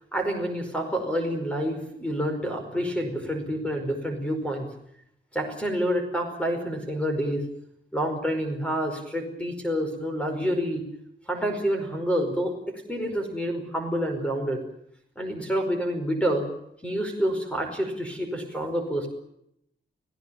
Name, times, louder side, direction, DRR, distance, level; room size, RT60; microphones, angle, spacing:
voice 1, 0.1-4.7 5.3-7.5 7.9-10.8 11.3-14.6 15.1-16.5 16.8-19.1, equal, 5° left, 5 dB, 5.1 m, -28 dB
29.5 x 17.5 x 7.1 m, 0.76 s
wide cardioid pair, 155°, 19 cm